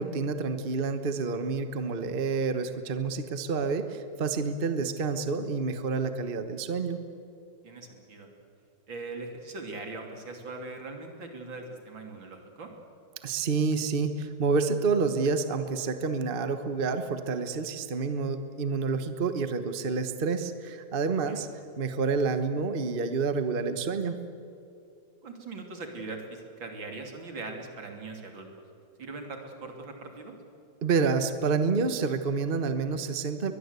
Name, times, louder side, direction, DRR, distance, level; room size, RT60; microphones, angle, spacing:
voice 1, 0.0-7.0 13.2-21.5 21.8-24.2 30.8-33.5, right 4 dB, 35° right, 9 dB, 1.2 m, -28 dB
voice 2, 7.6-8.3 8.9-12.7 21.3-21.5 25.2-28.6 29.0-30.4, right 3 dB, 80° right, 3 dB, 3.7 m, -41 dB
22.5 x 21.5 x 8.2 m, 2.6 s
omnidirectional pair, 2.1 m